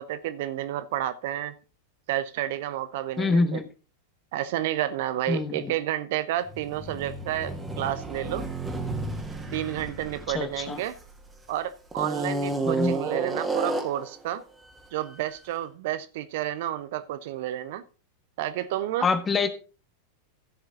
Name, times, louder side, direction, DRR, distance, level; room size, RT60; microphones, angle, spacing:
voice 1, 0.0-1.5 2.1-3.6 4.3-8.4 9.5-10.9 11.5-14.4 14.9-17.8 18.4-19.1, right 13 dB, 50° right, 13 dB, 0.8 m, -30 dB
voice 2, 3.2-3.7 5.3-5.7 10.3-10.8 12.6-13.0 19.0-19.5, left 4 dB, 20° left, 11 dB, 1.3 m, -25 dB
sound 1, 6.5-11.3 11.9-14.1, right 3 dB, 10° right, 2.1 m, -31 dB
15.0 x 6.5 x 4.0 m, 0.34 s
figure-of-eight pair, 90°, 0 cm